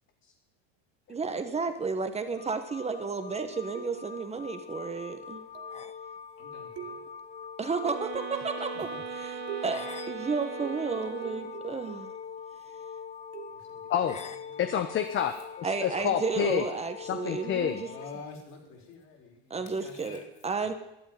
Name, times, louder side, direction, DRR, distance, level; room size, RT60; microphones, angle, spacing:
voice 1, 1.1-5.4 7.6-12.1 15.6-17.9 19.5-20.7, right 4 dB, 20° right, 7 dB, 1.3 m, -32 dB
sound 1, 2.4-18.3, left 7 dB, 20° left, 0.7 m, -43 dB
sound 2, 3.7-4.3 5.5-5.9 6.8-7.4 8.1-8.6 9.5-10.0 10.6-12.3 13.3-13.8 15.2-15.4, right 14 dB, 55° right, 1.5 m, -44 dB
voice 2, 6.4-7.0 8.7-9.0 13.4-13.9 14.5-14.6 17.7-20.2 20.6-20.8, left 4 dB, 60° left, 1 dB, 5.1 m, -48 dB
sound 3, 7.8-11.7, right 14 dB, 80° right, 1.3 m, -40 dB
voice 3, 14.6-16.7 17.1-17.8, left 9 dB, 40° left, 8 dB, 1.1 m, -28 dB
12.5 x 10.0 x 9.2 m, 0.91 s
supercardioid pair, 115°, 31 cm